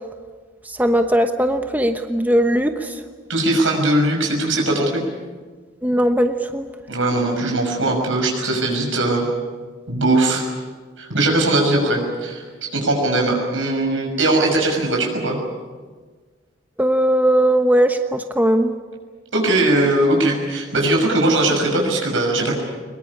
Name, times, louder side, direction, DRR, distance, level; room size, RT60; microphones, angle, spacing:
voice 1, 0.8-2.9 5.8-6.6 16.8-18.7, right 1 dB, 10° right, 6 dB, 1.1 m, -18 dB
voice 2, 3.3-5.0 6.9-9.2 9.9-10.4 11.0-12.4 12.7-15.4 19.3-22.5, right 2 dB, 85° right, 0 dB, 6.4 m, -19 dB
22.0 x 21.5 x 9.9 m, 1.4 s
head